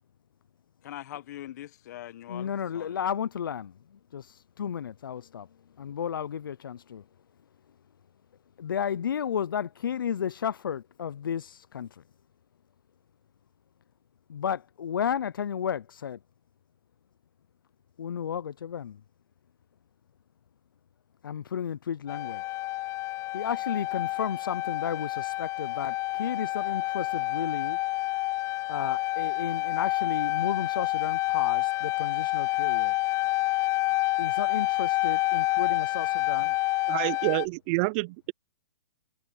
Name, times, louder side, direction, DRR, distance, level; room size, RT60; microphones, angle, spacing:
voice 1, 0.8-3.0, left 13 dB, 55° left, 1.4 m, -42 dB
voice 2, 2.3-3.7 4.1-5.5 5.8-7.0 8.6-12.0 14.3-16.2 18.0-19.0 21.2-22.4 23.3-27.8 28.7-32.9 34.2-36.5, left 8 dB, 80° left, 0.5 m, -33 dB
sound 1, 22.1-37.5, left 19 dB, 25° left, 0.6 m, -28 dB
voice 3, 36.9-38.3, right 29 dB, 35° right, 0.6 m, -28 dB
hypercardioid pair, 130°, 11 cm